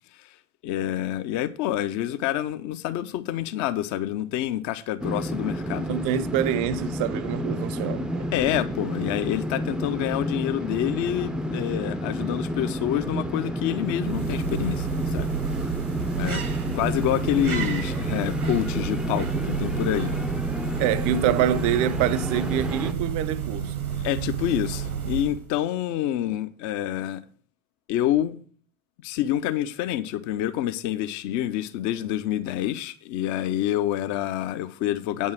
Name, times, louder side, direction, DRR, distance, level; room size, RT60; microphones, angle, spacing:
voice 1, 0.6-5.9 8.3-15.3 16.2-16.4 16.7-20.2 24.0-27.2 27.9-28.4 29.0-35.3, left 12 dB, 45° left, 0.8 m, -27 dB
sound 1, 5.0-22.9, equal, ahead, 0.5 m, -30 dB
voice 2, 5.9-8.3 20.8-23.7, right 10 dB, 45° right, 0.6 m, -26 dB
sound 2, 13.7-25.6, right 8 dB, 85° right, 1.1 m, -31 dB
8.6 x 5.5 x 6.2 m
figure-of-eight pair, 75°, 43 cm